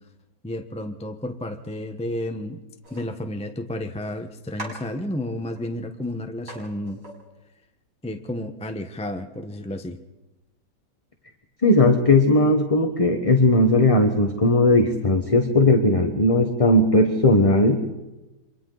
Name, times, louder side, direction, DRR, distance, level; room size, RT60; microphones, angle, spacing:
voice 1, 0.4-2.6 2.9-7.0 8.0-10.0, left 1 dB, 5° left, 6 dB, 0.8 m, -31 dB
sound 1, 2.8-3.0 4.0-4.1 4.5-5.6 6.0-6.1 6.5-6.6 6.9-7.2, right 1 dB, 45° right, 6.0 m, -40 dB
voice 2, 11.6-17.8, left 2 dB, 20° left, 4 dB, 1.2 m, -18 dB
29.0 x 25.0 x 4.0 m, 1.1 s
omnidirectional pair, 1.9 m